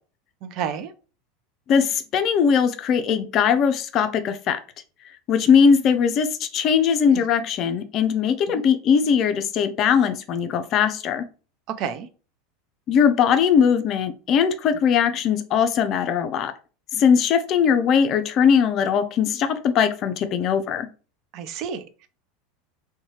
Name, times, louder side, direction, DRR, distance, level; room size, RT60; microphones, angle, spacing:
voice 1, 0.4-0.9 7.1-7.2 8.5-8.6 11.7-12.1 21.3-22.1, right 8 dB, 50° right, 11 dB, 0.4 m, -30 dB
voice 2, 1.7-4.6 5.3-11.2 12.9-16.5 16.9-20.9, left 7 dB, 45° left, 8 dB, 0.4 m, -20 dB
2.7 x 2.2 x 2.9 m, 0.35 s
figure-of-eight pair, 80°, 0 cm